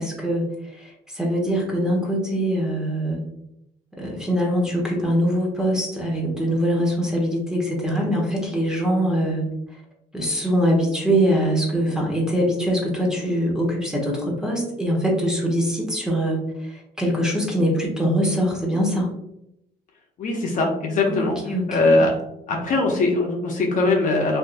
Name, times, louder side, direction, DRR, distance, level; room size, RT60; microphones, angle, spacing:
voice 1, 0.0-3.2 4.0-9.4 10.1-19.1 21.1-22.1, equal, 5° right, -2 dB, 1.0 m, -23 dB
voice 2, 20.2-22.1 22.5-24.4, left 2 dB, 50° left, 0 dB, 0.7 m, -21 dB
3.5 x 2.6 x 2.5 m, 0.82 s
cardioid pair, 110°, 17 cm